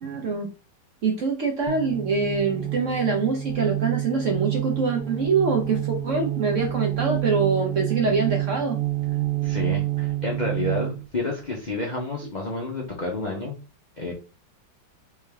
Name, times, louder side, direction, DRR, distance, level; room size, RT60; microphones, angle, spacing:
voice 1, 0.0-0.5 1.0-8.8, right 4 dB, 60° right, 2 dB, 0.8 m, -24 dB
sound 1, 1.7-11.0, right 14 dB, 75° right, 1.2 m, -28 dB
voice 2, 9.4-13.5 14.0-14.1, left 2 dB, 60° left, -1 dB, 0.4 m, -30 dB
3.5 x 3.2 x 3.4 m, 0.32 s
omnidirectional pair, 2.0 m